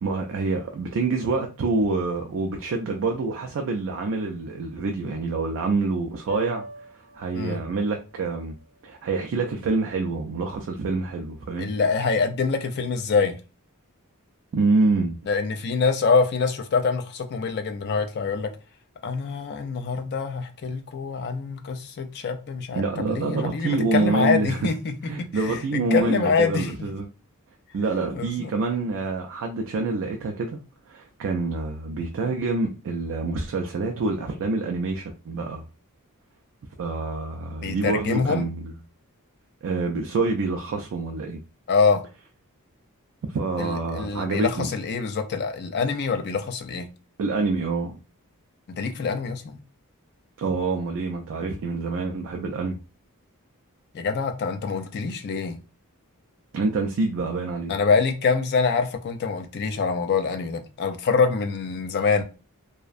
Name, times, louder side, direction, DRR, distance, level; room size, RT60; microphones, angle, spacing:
voice 1, 0.0-6.6 7.1-8.5 8.8-11.7 14.5-15.2 22.8-24.6 25.0-27.1 27.7-30.6 30.9-35.7 36.8-38.7 39.6-41.4 43.3-44.7 47.2-47.9 50.4-52.8 56.5-57.7, right 3 dB, 60° right, 0.3 m, -26 dB
sound 1, 6.3-10.5, equal, 15° left, 1.3 m, -41 dB
voice 2, 11.6-13.3 15.3-18.5 19.0-22.8 23.1-24.9 25.2-26.7 28.1-28.5 37.6-38.5 41.7-42.0 43.6-46.9 48.8-49.6 53.9-55.6 57.7-62.2, left 5 dB, 50° left, 0.4 m, -25 dB
2.5 x 2.1 x 2.4 m
head